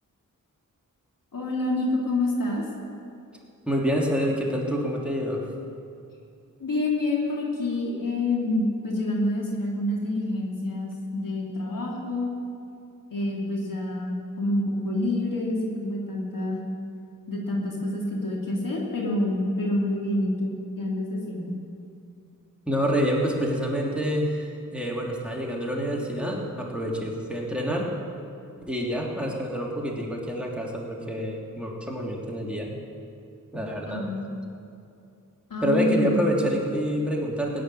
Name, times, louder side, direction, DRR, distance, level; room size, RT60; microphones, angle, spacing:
voice 1, 1.3-2.6 6.6-12.3 13.1-16.6 17.3-21.5 33.9-34.3 35.5-36.3, left 2 dB, 70° left, -2 dB, 3.2 m, -27 dB
voice 2, 3.7-5.4 22.7-27.9 28.7-32.7 33.5-34.1 35.6-37.6, equal, 5° right, -3 dB, 3.0 m, -27 dB
17.0 x 8.5 x 9.9 m, 2.6 s
cardioid pair, 60°, 34 cm